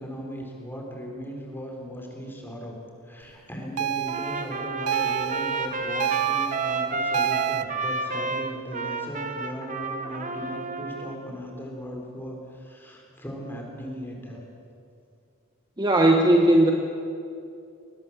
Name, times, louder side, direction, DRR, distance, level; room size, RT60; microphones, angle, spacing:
voice 1, 0.0-2.8 3.0-14.4, equal, 10° left, 0 dB, 4.2 m, -37 dB
sound 1, 3.8-7.6, right 11 dB, 85° right, 0.4 m, -29 dB
Trumpet, 4.1-11.2, right 4 dB, 35° right, 1.3 m, -30 dB
voice 2, 15.8-16.7, right 1 dB, 20° right, 2 dB, 1.2 m, -17 dB
21.5 x 19.0 x 7.4 m, 2.5 s
head